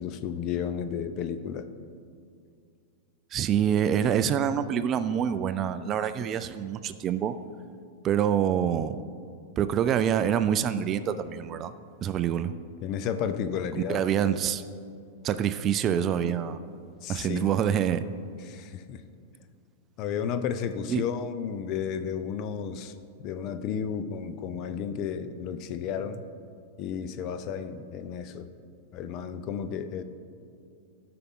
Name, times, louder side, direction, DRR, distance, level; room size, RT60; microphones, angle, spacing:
voice 1, 0.0-1.7 12.8-14.0 17.0-17.5 18.4-19.0 20.0-22.9 23.2-26.2 26.8-28.5 28.9-30.0, left 7 dB, 45° left, 10 dB, 0.6 m, -32 dB
voice 2, 3.3-7.4 8.0-9.0 9.6-11.7 12.0-12.5 13.9-14.6 15.2-16.6 17.1-18.1 20.9-21.1, right 9 dB, 35° right, 12 dB, 0.4 m, -26 dB
13.5 x 5.8 x 3.7 m, 2.3 s
hypercardioid pair, 120°, 0 cm